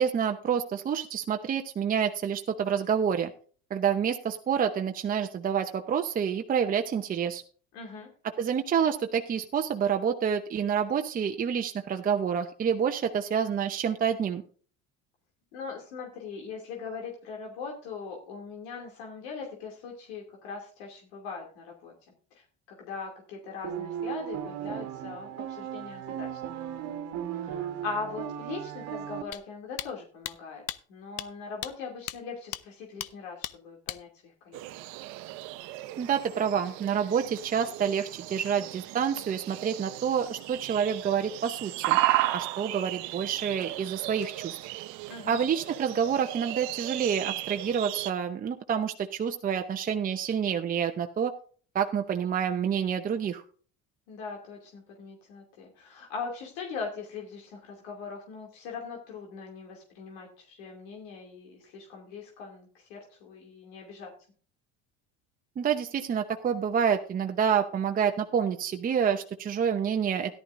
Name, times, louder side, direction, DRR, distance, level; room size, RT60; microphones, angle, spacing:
voice 1, 0.0-3.3 3.7-7.4 8.4-14.4 36.0-42.0 42.3-44.6 45.3-51.3 51.7-53.4 65.6-70.3, right 7 dB, 30° right, 5 dB, 0.8 m, -28 dB
voice 2, 7.7-8.1 15.5-21.9 22.3-26.8 27.3-30.6 30.9-34.6 45.1-45.4 54.1-64.1, left 5 dB, 90° left, 0 dB, 2.7 m, -40 dB
sound 1, 23.6-29.2, right 10 dB, 60° right, 1.4 m, -36 dB
sound 2, 29.3-29.4 29.8-29.9 30.2-30.3 30.7-30.8 31.2-31.3 31.6-31.7 32.1-32.2 32.5-32.6 33.0-33.1 33.4-33.5 33.9-34.0, left 14 dB, 55° left, 0.6 m, -35 dB
sound 3, 34.5-48.1, right 16 dB, 75° right, 0.8 m, -34 dB
13.5 x 11.5 x 2.6 m, 0.42 s
cardioid pair, 120°, 30 cm